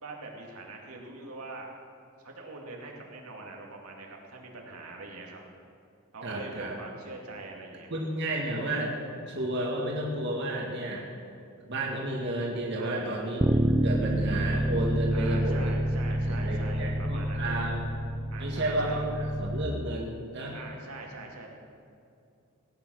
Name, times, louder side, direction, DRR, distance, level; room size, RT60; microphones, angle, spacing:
voice 1, 0.0-1.7 2.2-5.4 6.1-7.9 12.8-13.1 15.1-17.7 18.3-19.0 20.5-21.5, right 3 dB, 85° right, 0 dB, 2.3 m, -43 dB
voice 2, 6.2-6.8 7.9-9.0 9.3-11.1 11.7-13.4 13.7-15.7 16.3-17.8 18.4-20.6, right 1 dB, 50° right, -2 dB, 1.9 m, -32 dB
Bass guitar, 13.4-19.7, right 1 dB, 20° right, 0.6 m, -28 dB
17.5 x 9.3 x 6.4 m, 2.5 s
head